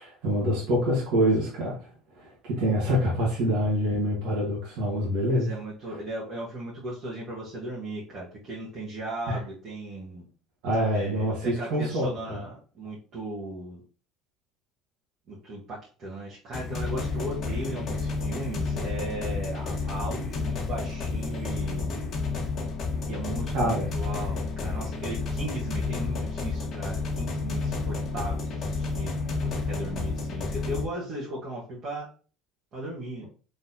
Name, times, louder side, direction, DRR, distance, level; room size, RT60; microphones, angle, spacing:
voice 1, 0.0-1.8 2.1-5.5 9.3-9.4 10.6-12.4 23.5-23.9, equal, 75° right, -6 dB, 1.7 m, -26 dB
voice 2, 5.3-10.3 10.9-13.8 15.3-22.0 23.1-32.1 32.7-33.2, right 1 dB, 55° right, -5 dB, 1.6 m, -37 dB
sound 1, 16.5-30.8, left 3 dB, 50° left, 1.3 m, -30 dB
4.5 x 3.4 x 2.8 m, 0.38 s
supercardioid pair, 85°, 0 cm